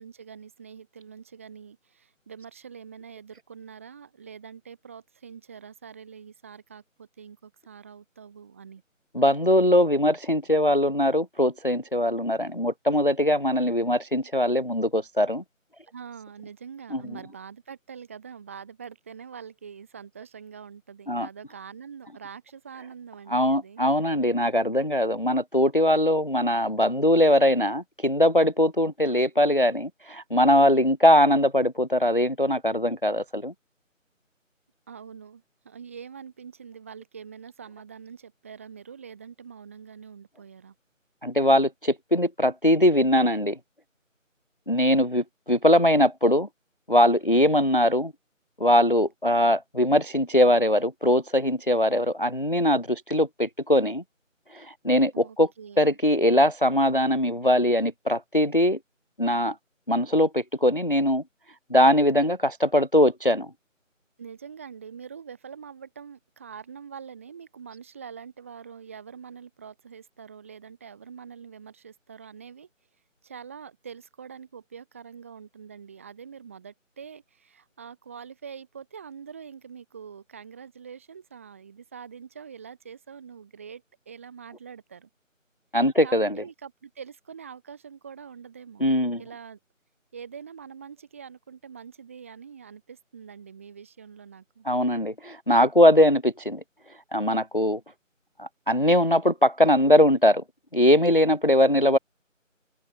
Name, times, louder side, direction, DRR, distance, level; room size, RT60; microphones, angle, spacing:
voice 1, 0.0-8.8 15.9-23.8 34.9-40.7 55.1-56.0 64.2-72.7 73.2-85.1 86.0-88.9 89.2-89.6 90.1-94.7, right 7 dB, 10° right, 4.0 m, -44 dB
voice 2, 9.1-15.4 16.9-17.0 21.1-21.3 23.3-33.5 41.2-43.6 44.7-46.5 46.9-48.1 48.6-54.0 54.5-55.5 55.8-58.8 59.2-59.6 59.9-61.2 61.7-63.5 85.7-86.4 88.8-89.2 94.7-96.6 97.1-97.8 98.4-100.4 100.7-102.0, left 1 dB, 40° left, 0.5 m, -21 dB
figure-of-eight pair, 170°, 40 cm